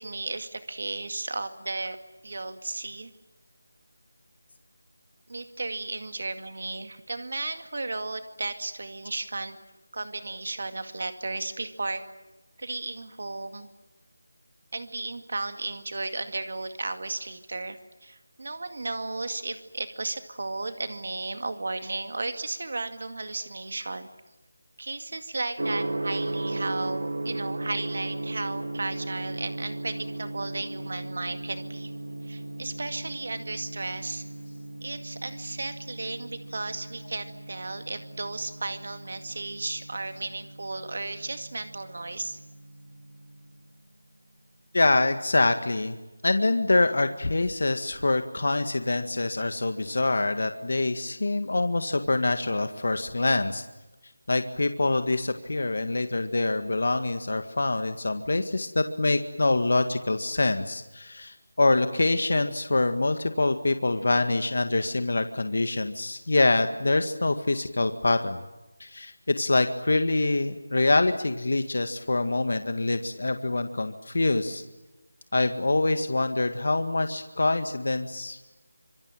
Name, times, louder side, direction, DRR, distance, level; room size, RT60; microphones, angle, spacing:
voice 1, 0.0-2.0 2.2-3.1 5.3-9.6 9.9-12.0 12.6-13.7 14.7-24.1 24.8-31.9 32.2-34.2 34.8-42.4, right 2 dB, 55° right, 8 dB, 2.2 m, -34 dB
Gong, 25.6-43.4, right 2 dB, 80° right, 2.1 m, -36 dB
voice 2, 44.7-46.0 46.2-53.6 54.3-68.4 68.8-74.6 75.3-78.5, left 2 dB, 60° left, 8 dB, 1.9 m, -25 dB
26.5 x 24.0 x 9.1 m, 1.1 s
figure-of-eight pair, 175°, 0 cm